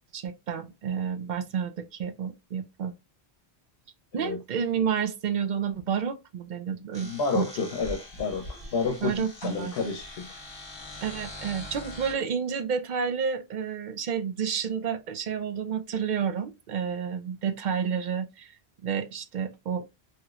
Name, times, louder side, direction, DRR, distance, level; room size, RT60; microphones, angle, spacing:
voice 1, 0.1-2.9 4.1-7.5 9.0-9.7 11.0-18.5 18.8-19.8, right 7 dB, 55° right, 0.6 m, -30 dB
sound 1, 6.9-12.1, left 1 dB, 25° left, 1.0 m, -42 dB
voice 2, 7.0-10.3, left 4 dB, 75° left, 0.8 m, -30 dB
3.0 x 2.9 x 2.3 m
omnidirectional pair, 1.1 m